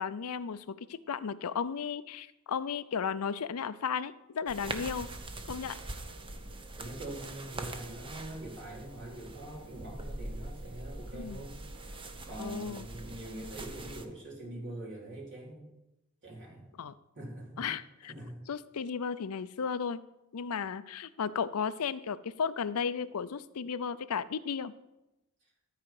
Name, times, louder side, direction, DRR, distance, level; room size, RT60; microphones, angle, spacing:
voice 1, 0.0-5.1 5.5-5.8 11.1-11.4 12.4-12.9 16.8-16.9 17.6-18.1 18.5-20.0 20.3-24.7, left 6 dB, 80° left, 15 dB, 0.5 m, -34 dB
sound 1, 4.5-14.1, right 2 dB, 25° right, 0.8 m, -43 dB
voice 2, 6.7-15.7 16.2-16.7 17.1-17.6 18.1-18.4 25.4-25.5, right 1 dB, 55° right, -3 dB, 4.2 m, -44 dB
13.0 x 5.0 x 7.7 m, 0.95 s
head